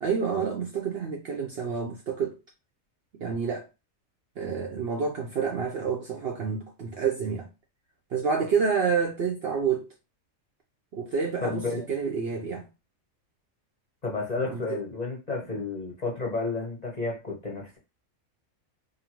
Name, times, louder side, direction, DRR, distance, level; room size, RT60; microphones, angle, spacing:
voice 1, 0.0-2.4 3.1-3.7 4.4-7.5 8.1-9.9 10.9-12.7 14.4-14.8 15.5-15.6, right 6 dB, 60° right, 0.6 m, -28 dB
voice 2, 11.4-11.9 14.0-17.8, left 3 dB, 40° left, 0.7 m, -31 dB
2.7 x 2.6 x 2.9 m
omnidirectional pair, 1.4 m